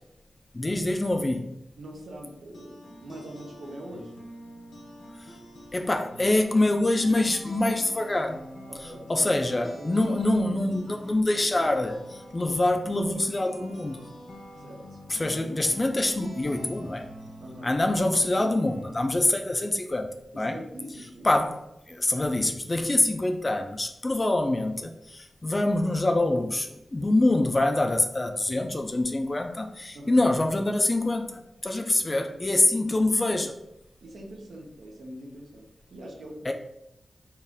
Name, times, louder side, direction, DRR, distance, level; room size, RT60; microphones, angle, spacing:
voice 1, 0.5-1.5 5.7-8.5 9.1-14.0 15.1-17.1 17.6-20.6 21.2-21.6 21.9-33.5 36.5-36.6, left 2 dB, 25° left, 0.3 m, -25 dB
voice 2, 1.8-4.1 8.7-9.1 9.8-10.2 14.6-15.0 15.3-15.4 17.4-17.8 20.3-21.5 29.9-30.2 32.0-33.4 34.0-36.5, right 1 dB, 85° right, 0.9 m, -43 dB
sound 1, 2.3-19.2, equal, 85° left, 1.1 m, -45 dB
4.2 x 2.4 x 3.6 m
wide cardioid pair, 145°, 0 cm